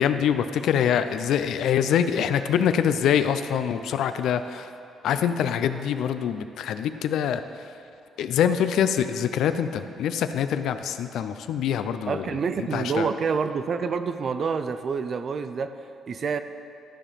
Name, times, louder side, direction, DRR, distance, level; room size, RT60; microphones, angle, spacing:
voice 1, 0.0-4.7 5.0-7.4 8.2-12.3 12.7-13.1, left 8 dB, 80° left, 10 dB, 0.4 m, -24 dB
voice 2, 12.1-15.7 16.1-16.4, right 5 dB, 50° right, 10 dB, 0.5 m, -27 dB
12.0 x 5.1 x 5.7 m, 2.7 s
cardioid pair, 90°, 0 cm